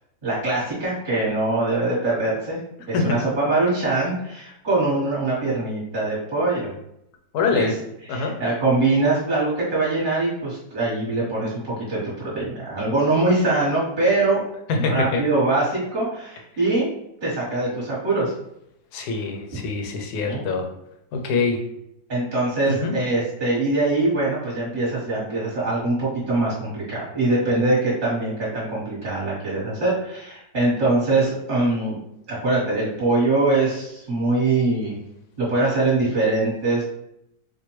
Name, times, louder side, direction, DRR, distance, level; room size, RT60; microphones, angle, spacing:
voice 1, 0.2-2.6 2.9-6.7 7.5-7.7 8.1-14.4 14.9-16.9 17.2-18.3 20.3-20.4 22.1-32.0 32.3-35.0 35.4-36.8, right 2 dB, 35° right, -7 dB, 1.3 m, -23 dB
voice 2, 7.3-7.7 8.1-8.3 14.7-15.2 18.9-20.6 21.1-21.6 22.7-22.9, left 4 dB, 70° left, 3 dB, 1.2 m, -24 dB
4.3 x 2.2 x 3.0 m, 0.80 s
omnidirectional pair, 1.8 m